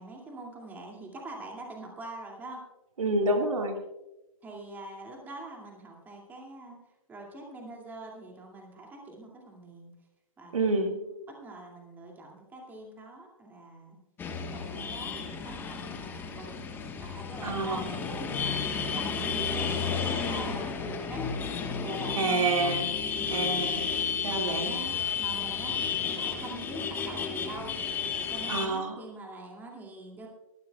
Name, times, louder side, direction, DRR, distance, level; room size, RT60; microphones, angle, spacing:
voice 1, 0.0-2.6 4.4-6.8 7.1-9.9 10.4-14.0 14.4-21.3 21.8-22.5 23.1-23.4 24.3-27.8 28.3-30.3, right 2 dB, 10° right, 0 dB, 2.4 m, -44 dB
voice 2, 3.0-3.7 10.5-10.9 17.4-17.9 22.2-22.9 23.3-23.8 24.2-24.7 28.5-29.0, right 2 dB, 70° right, 4 dB, 2.2 m, -28 dB
sound 1, 14.2-28.7, left 6 dB, 10° left, 1.3 m, -32 dB
25.5 x 12.0 x 2.3 m, 0.98 s
hypercardioid pair, 140°, 18 cm